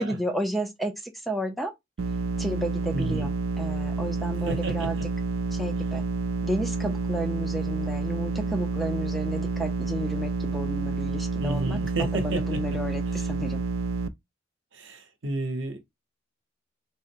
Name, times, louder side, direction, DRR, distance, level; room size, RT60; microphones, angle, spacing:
voice 1, 0.0-1.7 2.4-5.0 5.5-6.0 6.4-13.6, equal, ahead, 0.5 m, -32 dB
sound 1, 2.0-14.1, right 4 dB, 80° right, 0.4 m, -29 dB
voice 2, 2.9-3.3 4.4-5.1 11.4-12.8 13.1-13.3 14.7-15.8, right 2 dB, 60° right, 0.9 m, -31 dB
3.6 x 2.1 x 4.2 m
head